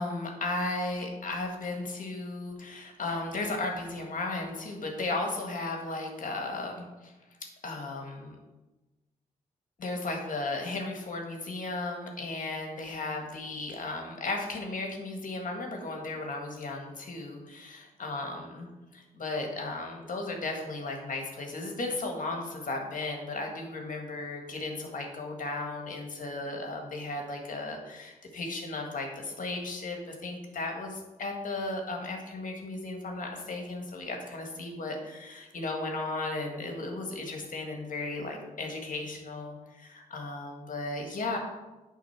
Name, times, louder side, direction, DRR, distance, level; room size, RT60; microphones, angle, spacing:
voice 1, 0.0-7.1 7.6-8.4 9.8-18.7 18.9-41.4, left 2 dB, 55° left, 2 dB, 1.8 m, -35 dB
8.4 x 3.8 x 5.9 m, 1.1 s
supercardioid pair, 50°, 16 cm